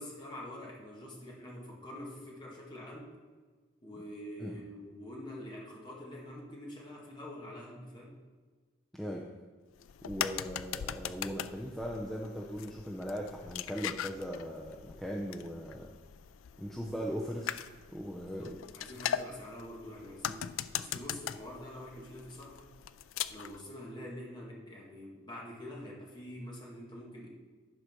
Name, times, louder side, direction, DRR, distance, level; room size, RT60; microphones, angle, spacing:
voice 1, 0.0-3.2 3.8-8.2 18.3-22.7 23.3-27.3, left 1 dB, 25° left, -3 dB, 2.1 m, -46 dB
voice 2, 8.9-9.3 10.1-15.9 16.6-17.6 17.9-18.6, equal, ahead, -2 dB, 0.7 m, -39 dB
sound 1, 9.8-23.6, left 9 dB, 85° left, 0.4 m, -41 dB
11.0 x 5.0 x 6.1 m, 1.4 s
head